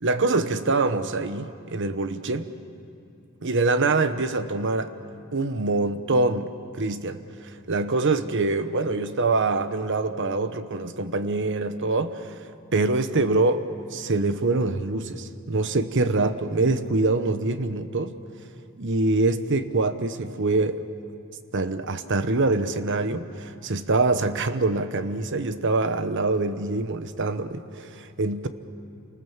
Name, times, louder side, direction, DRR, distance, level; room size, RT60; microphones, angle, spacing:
voice 1, 0.0-2.5 3.4-4.9 5.3-12.4 12.7-13.6 13.9-18.1 18.8-20.8 21.5-28.5, right 3 dB, 60° right, 11 dB, 1.0 m, -25 dB
28.5 x 19.5 x 7.3 m, 2.6 s
head